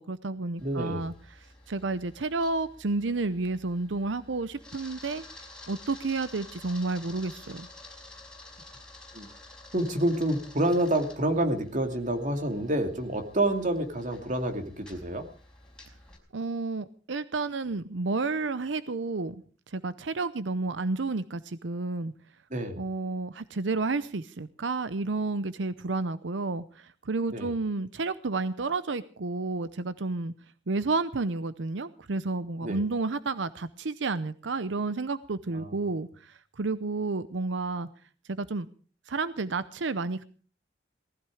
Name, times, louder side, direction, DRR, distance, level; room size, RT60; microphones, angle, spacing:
voice 1, 0.0-5.2 5.7-7.7 16.3-22.1 22.8-30.3 30.7-37.9 38.3-38.7 39.1-40.2, right 3 dB, 90° right, 14 dB, 0.7 m, -31 dB
Camera, 0.6-16.2, left 2 dB, 5° left, 4.8 m, -50 dB
voice 2, 0.6-1.1 9.1-9.3 9.7-15.2 22.5-22.8 27.3-27.5 32.6-32.8 35.5-35.7, right 1 dB, 45° right, 6 dB, 2.6 m, -28 dB
19.5 x 14.5 x 4.9 m, 0.40 s
head